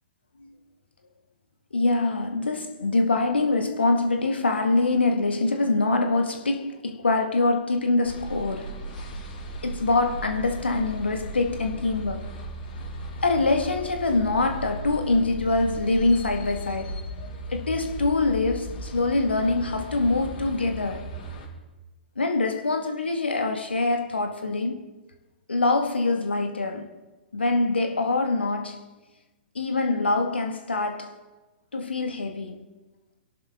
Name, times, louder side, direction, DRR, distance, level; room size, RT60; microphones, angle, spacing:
voice 1, 1.7-8.8 9.6-12.3 13.2-17.0 17.5-21.1 22.2-24.9 25.5-26.9 27.3-28.9 29.6-31.2 31.7-32.7, left 3 dB, 80° left, 1.9 m, -24 dB
sound 1, 8.0-21.5, right 1 dB, 60° left, 4.3 m, -36 dB
25.5 x 11.5 x 3.8 m
figure-of-eight pair, 115°, 6 cm